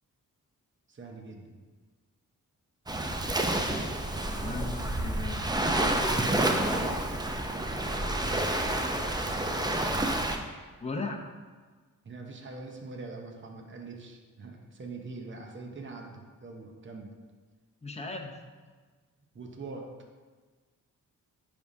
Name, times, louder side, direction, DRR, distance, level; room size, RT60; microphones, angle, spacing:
voice 1, 0.9-1.6 5.5-6.9 8.2-8.5 9.4-10.1 12.0-17.1 19.3-19.9, right 3 dB, 35° right, 1 dB, 0.9 m, -43 dB
Waves surf, 2.9-10.4, right 1 dB, 10° right, 0.5 m, -29 dB
voice 2, 4.2-5.4 6.7-6.9 10.8-11.2 17.8-18.4, left 3 dB, 20° left, 2 dB, 0.8 m, -37 dB
10.0 x 3.5 x 2.7 m, 1.4 s
cardioid pair, 65°, 35 cm